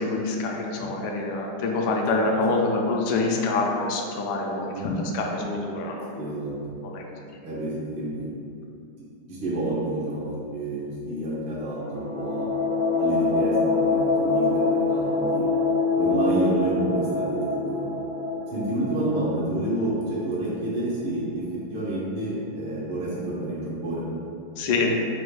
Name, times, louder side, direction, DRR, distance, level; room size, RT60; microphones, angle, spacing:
voice 1, 0.0-4.7 5.0-6.1 6.8-7.0 24.6-25.0, left 3 dB, 70° left, 0 dB, 1.0 m, -26 dB
voice 2, 6.1-6.5 7.4-8.3 9.3-12.5 13.0-15.5 16.0-17.9 18.5-21.4 21.7-24.0, right 1 dB, 85° right, -8 dB, 1.9 m, -29 dB
sound 1, 11.7-20.3, left 4 dB, 60° right, 0.9 m, -25 dB
4.9 x 2.3 x 4.6 m, 2.6 s
omnidirectional pair, 2.3 m